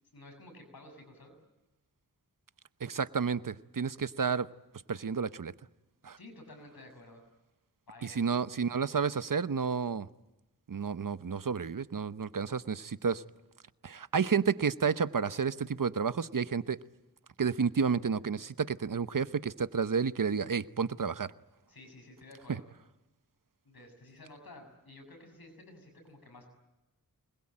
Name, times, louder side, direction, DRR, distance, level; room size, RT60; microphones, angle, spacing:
voice 1, 0.1-1.3 6.2-7.2 7.9-8.2 21.7-22.7 23.6-26.5, left 2 dB, 90° left, 6.7 m, -52 dB
voice 2, 2.8-4.5 4.9-5.5 6.0-6.2 8.0-10.1 10.7-13.2 13.8-16.8 17.4-21.3, right 6 dB, 65° right, 0.9 m, -31 dB
24.5 x 21.5 x 8.8 m
wide cardioid pair, 45°, 35 cm